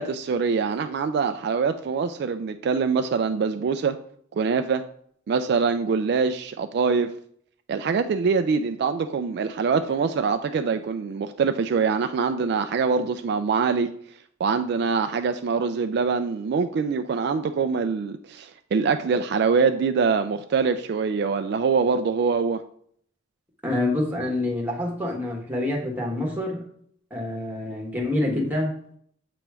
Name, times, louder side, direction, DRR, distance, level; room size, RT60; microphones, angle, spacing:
voice 1, 0.0-4.0 4.3-4.8 5.3-7.1 7.7-13.9 14.4-22.6, right 5 dB, 60° right, 8 dB, 0.3 m, -24 dB
voice 2, 23.6-26.6 27.1-28.7, left 1 dB, 10° right, -1 dB, 1.4 m, -26 dB
7.7 x 3.0 x 4.7 m, 0.62 s
head